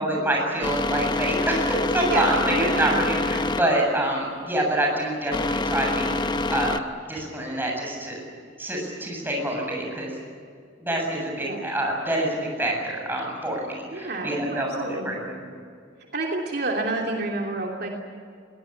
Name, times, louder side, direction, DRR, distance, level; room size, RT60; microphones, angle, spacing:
voice 1, 0.0-6.8 7.1-8.2 8.6-10.1 10.8-15.4, right 1 dB, 10° right, 0 dB, 7.5 m, -26 dB
sound 1, 0.6-6.8, left 2 dB, 25° left, 0.8 m, -27 dB
voice 2, 2.1-3.1 11.4-11.6 13.9-15.1 16.1-17.9, right 2 dB, 55° right, 0 dB, 2.9 m, -29 dB
23.0 x 18.5 x 9.9 m, 2.2 s
head